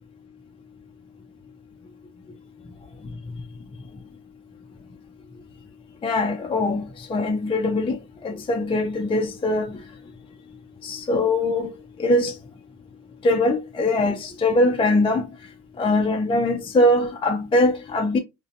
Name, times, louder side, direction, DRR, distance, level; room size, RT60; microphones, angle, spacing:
voice 1, 6.0-8.0 8.2-9.8 10.8-11.7 12.0-12.3 13.2-15.3 15.8-18.2, left 2 dB, 20° left, 0.4 m, -22 dB
2.6 x 2.1 x 2.5 m
cardioid pair, 90°, 30 cm